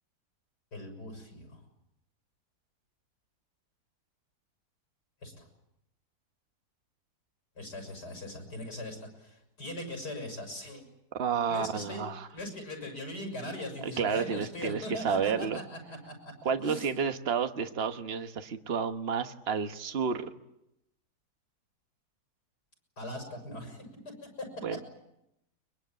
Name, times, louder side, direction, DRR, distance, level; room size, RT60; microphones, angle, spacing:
voice 1, 0.7-1.6 5.2-5.5 7.6-10.8 11.5-12.0 12.3-16.9 23.0-23.9, left 1 dB, 85° left, 4 dB, 7.1 m, -40 dB
voice 2, 11.2-12.3 14.0-15.6 16.4-20.3 24.6-24.8, right 6 dB, 40° right, 8 dB, 1.4 m, -31 dB
23.0 x 22.5 x 9.1 m, 0.85 s
omnidirectional pair, 1.7 m